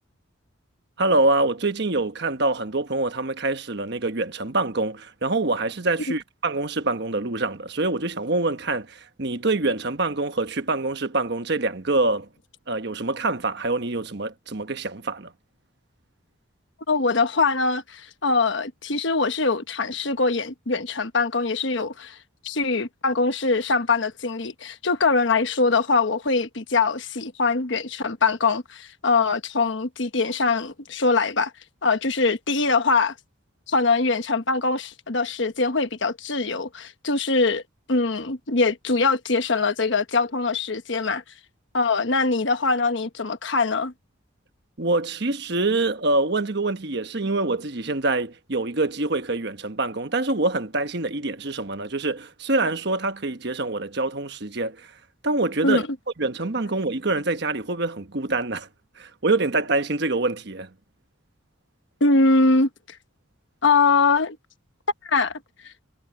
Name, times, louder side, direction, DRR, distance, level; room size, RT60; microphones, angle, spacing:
voice 1, 1.0-12.3 12.7-15.3 44.8-54.9 55.2-55.8 56.2-58.7 59.0-60.7, right 2 dB, 55° right, 1.2 m, -25 dB
voice 2, 16.9-22.2 22.4-31.5 31.8-33.1 33.7-37.6 37.9-41.2 41.7-43.9 55.6-55.8 62.0-63.0 63.6-64.4 65.0-65.7, left 3 dB, 65° left, 1.2 m, -23 dB
head